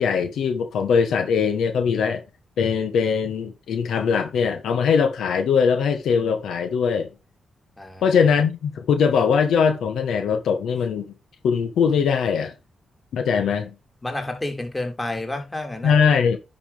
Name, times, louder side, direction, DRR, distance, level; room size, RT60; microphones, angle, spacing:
voice 1, 0.0-2.2 2.6-7.1 8.0-11.1 11.4-12.5 13.1-13.7 15.8-16.4, left 6 dB, 85° left, 1.3 m, -21 dB
voice 2, 14.0-16.0, left 2 dB, 20° left, 3.0 m, -30 dB
10.0 x 5.5 x 3.4 m
cardioid pair, 70°, 0 cm